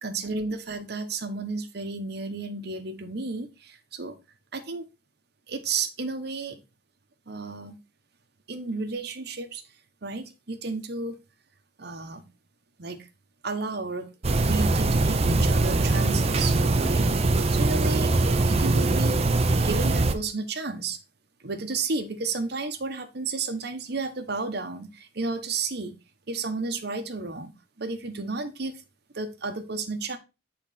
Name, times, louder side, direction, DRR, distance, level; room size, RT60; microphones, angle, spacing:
voice 1, 0.0-4.2 4.5-4.9 5.5-6.6 7.3-7.8 8.5-9.6 10.0-11.2 11.8-12.2 12.8-13.1 13.4-14.1 14.4-17.1 17.5-19.2 19.6-21.0 21.4-25.9 26.3-27.5 27.8-28.7 29.1-30.2, right 3 dB, 60° right, 8 dB, 1.0 m, -32 dB
sound 1, 14.2-20.1, right 2 dB, 35° right, 0.6 m, -22 dB
7.6 x 4.0 x 4.0 m, 0.27 s
head